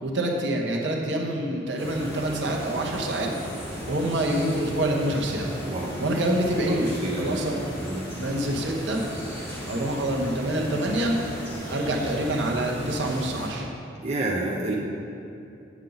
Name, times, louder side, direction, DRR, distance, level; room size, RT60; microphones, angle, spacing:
voice 1, 0.0-3.4 3.9-5.5 6.0-7.6 8.1-9.1 9.7-11.2 11.7-13.7 14.6-14.7, right 1 dB, 65° right, 0 dB, 0.9 m, -26 dB
sound 1, 1.8-13.5, equal, 10° left, 1.5 m, -36 dB
voice 2, 6.5-7.4 7.8-8.0 14.0-14.7, right 2 dB, 35° right, -3 dB, 0.7 m, -29 dB
8.1 x 7.2 x 3.9 m, 2.7 s
head